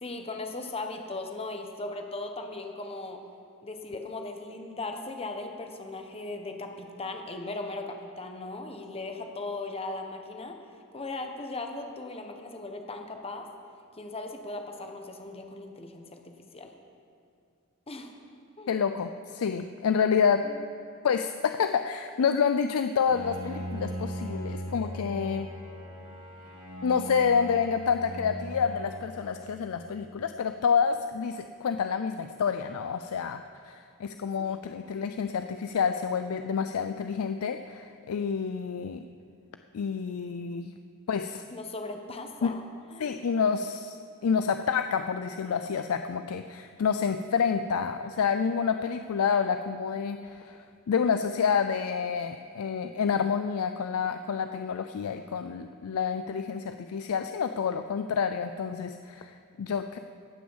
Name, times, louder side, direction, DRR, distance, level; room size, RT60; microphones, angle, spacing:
voice 1, 0.0-3.2 3.6-10.6 10.9-13.5 14.0-16.7 17.9-18.1 18.6-18.7 20.4-20.6 41.5-42.6 42.9-43.0, left 2 dB, 25° left, 4 dB, 1.1 m, -38 dB
voice 2, 18.7-20.4 21.0-25.5 26.8-39.0 39.7-40.7 41.1-41.4 42.4-42.5 43.0-60.0, left 6 dB, 70° left, 9 dB, 0.4 m, -28 dB
Bowed string instrument, 23.1-30.2, right 1 dB, 75° right, 1.7 m, -39 dB
17.5 x 6.2 x 7.2 m, 2.5 s
head